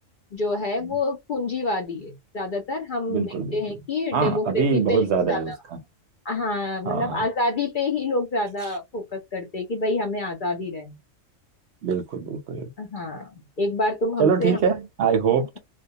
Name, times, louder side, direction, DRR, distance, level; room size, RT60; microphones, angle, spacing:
voice 1, 0.3-5.5 6.2-11.0 12.8-13.3 13.6-14.6, left 2 dB, 55° left, 0.6 m, -27 dB
voice 2, 3.1-3.6 4.1-5.8 6.8-7.2 11.8-12.7 14.2-15.6, right 6 dB, 65° right, 0.8 m, -24 dB
2.3 x 2.2 x 2.7 m
omnidirectional pair, 1.4 m